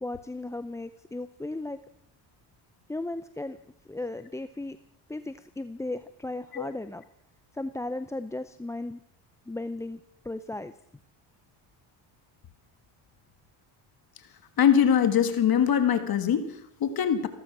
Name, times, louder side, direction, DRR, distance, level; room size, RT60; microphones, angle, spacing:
voice 1, 0.0-1.8 2.9-3.6 3.9-4.8 5.1-7.0 7.5-9.0 9.5-10.7, left 2 dB, 5° left, 11 dB, 0.5 m, -35 dB
voice 2, 14.6-17.3, left 8 dB, 50° left, 9 dB, 1.6 m, -23 dB
15.5 x 13.0 x 6.1 m, 0.73 s
cardioid pair, 90°, 47 cm